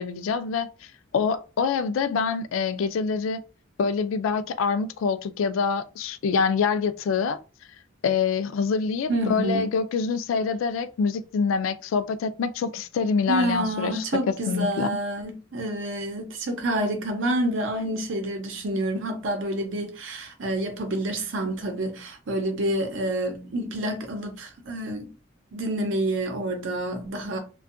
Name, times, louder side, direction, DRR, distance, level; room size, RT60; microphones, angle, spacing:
voice 1, 0.0-3.4 3.8-7.4 8.0-14.0 14.5-14.9, left 5 dB, 80° left, 0.3 m, -26 dB
voice 2, 9.1-9.7 13.3-25.1 25.5-27.4, right 1 dB, 70° right, 0.7 m, -28 dB
2.6 x 2.2 x 2.5 m
head